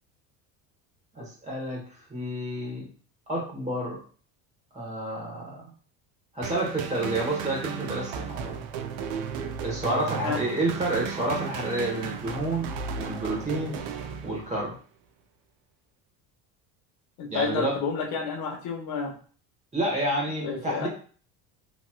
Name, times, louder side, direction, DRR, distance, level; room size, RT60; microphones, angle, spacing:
voice 1, 1.1-1.8 2.1-2.9 3.3-4.0 4.7-5.7 6.3-8.6 9.6-12.7 12.9-13.8 14.2-14.8 17.3-17.8 19.7-20.9, right 1 dB, 15° right, -3 dB, 1.1 m, -29 dB
sound 1, 6.4-14.7, right 6 dB, 70° right, 0.5 m, -35 dB
voice 2, 17.2-19.1 20.4-20.9, left 5 dB, 60° left, 1 dB, 0.9 m, -30 dB
3.1 x 2.8 x 2.2 m, 0.42 s
cardioid pair, 125°, 40 cm